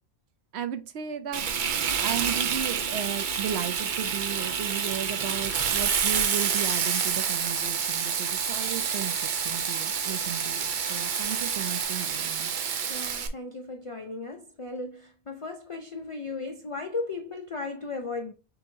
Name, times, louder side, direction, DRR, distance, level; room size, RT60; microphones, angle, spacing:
voice 1, 0.5-1.5 1.9-12.5, right 9 dB, 75° right, 0.9 m, -35 dB
Frying (food), 1.3-13.3, right 7 dB, 55° right, 0.6 m, -28 dB
sound 1, 2.8-11.8, left 1 dB, 75° left, 1.0 m, -42 dB
voice 2, 12.9-18.3, left 3 dB, 60° left, 0.3 m, -36 dB
6.8 x 2.8 x 2.6 m
omnidirectional pair, 1.1 m